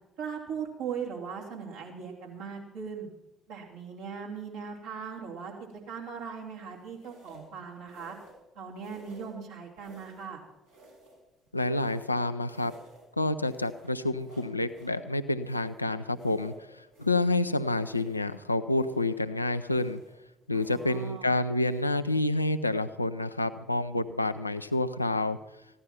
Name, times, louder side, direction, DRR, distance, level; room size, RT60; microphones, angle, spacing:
voice 1, 0.2-3.1 3.5-8.1 8.5-10.4 20.5-21.3, right 6 dB, 70° right, -3 dB, 2.8 m, -39 dB
sound 1, 5.7-6.0 6.9-7.5 7.9-8.5 8.7-9.4 9.8-10.3 10.6-12.2 12.4-13.1 13.4-15.0 15.4-17.4 17.7-18.4 18.7-19.2 19.6-20.2 20.5-21.1 21.5-21.8, right 1 dB, 85° right, 4.4 m, -55 dB
voice 2, 11.5-12.7 13.2-20.0 20.5-25.4, left 2 dB, 90° left, 10 dB, 0.4 m, -28 dB
15.0 x 11.0 x 5.8 m, 0.95 s
figure-of-eight pair, 50°, 0 cm